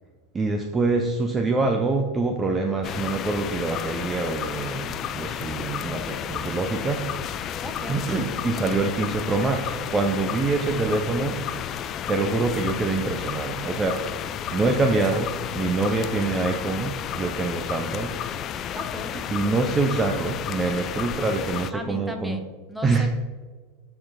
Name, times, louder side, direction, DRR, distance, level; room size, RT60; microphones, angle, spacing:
voice 1, 0.3-7.4 7.9-11.4 12.1-14.2 14.5-18.2 19.3-22.4 22.8-23.1, right 3 dB, 20° right, 5 dB, 0.6 m, -25 dB
sound 1, 2.8-21.7, left 9 dB, 40° left, 0.4 m, -32 dB
voice 2, 7.6-8.0 18.7-19.1 21.7-23.1, equal, 5° right, 5 dB, 1.0 m, -36 dB
10.5 x 3.9 x 2.6 m, 1.5 s
hypercardioid pair, 95°, 0 cm